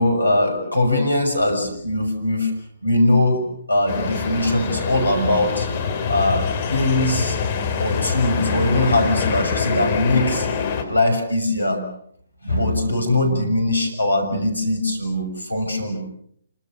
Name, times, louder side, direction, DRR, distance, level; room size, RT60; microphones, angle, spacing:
voice 1, 0.0-2.5 2.8-5.7 6.1-7.4 7.8-10.5 10.9-11.8 12.4-16.0, left 1 dB, 85° left, 6 dB, 6.4 m, -21 dB
sound 1, 3.9-10.8, left 6 dB, 35° left, 4.5 m, -25 dB
27.0 x 25.0 x 6.5 m, 0.66 s
figure-of-eight pair, 135°, 0 cm